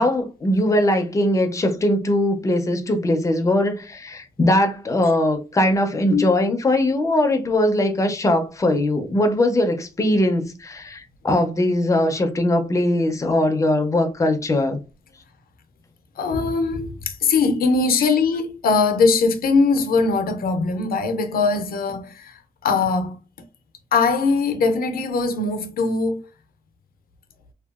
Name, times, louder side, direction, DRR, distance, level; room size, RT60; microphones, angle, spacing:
voice 1, 0.0-14.8, left 1 dB, 20° left, 0.4 m, -20 dB
voice 2, 16.2-23.2 23.9-26.2, left 4 dB, 85° left, 0.5 m, -21 dB
2.7 x 2.2 x 2.3 m
wide cardioid pair, 165°, 15 cm